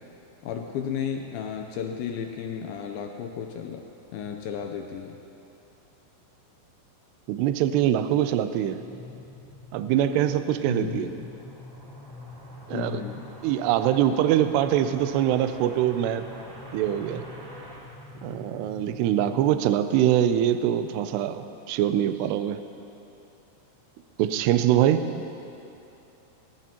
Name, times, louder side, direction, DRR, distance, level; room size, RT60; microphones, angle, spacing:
voice 1, 0.4-3.8 4.1-5.2 10.7-11.3 12.7-13.2, left 8 dB, 85° left, 4 dB, 2.1 m, -33 dB
voice 2, 7.3-8.8 9.7-11.1 12.7-13.0 13.4-16.3 16.7-17.2 18.2-22.6 24.2-25.3, right 11 dB, 80° right, 10 dB, 2.6 m, -23 dB
sound 1, 8.6-19.5, left 2 dB, 5° left, 3.7 m, -45 dB
sound 2, 10.8-18.9, right 1 dB, 25° right, 2.3 m, -47 dB
21.0 x 19.0 x 2.9 m, 2.9 s
omnidirectional pair, 5.0 m